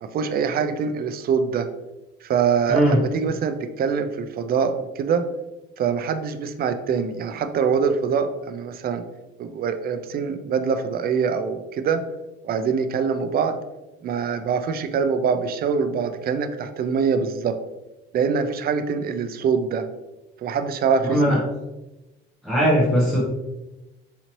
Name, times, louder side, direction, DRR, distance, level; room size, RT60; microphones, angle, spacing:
voice 1, 0.0-1.7 2.2-5.2 5.8-9.0 9.4-12.0 12.4-13.6 14.0-17.6 18.1-19.9 20.4-21.4, right 6 dB, 50° right, 9 dB, 0.4 m, -24 dB
voice 2, 2.7-3.0 21.0-21.4 22.4-23.2, equal, ahead, -7 dB, 0.8 m, -19 dB
4.0 x 2.8 x 2.9 m, 1.0 s
cardioid pair, 115°, 21 cm